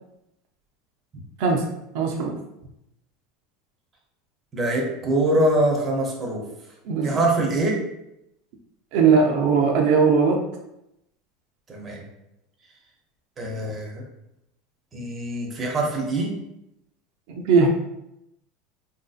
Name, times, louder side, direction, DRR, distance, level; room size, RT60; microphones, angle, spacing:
voice 1, 1.9-2.4 6.9-7.2 8.9-10.4 17.3-17.7, right 5 dB, 60° right, 1 dB, 0.4 m, -19 dB
voice 2, 4.5-6.4 7.0-7.8 11.7-12.0 13.4-14.0 14.9-16.4, right 1 dB, 20° right, -1 dB, 0.6 m, -24 dB
3.5 x 2.6 x 2.4 m, 0.85 s
supercardioid pair, 155°, 0 cm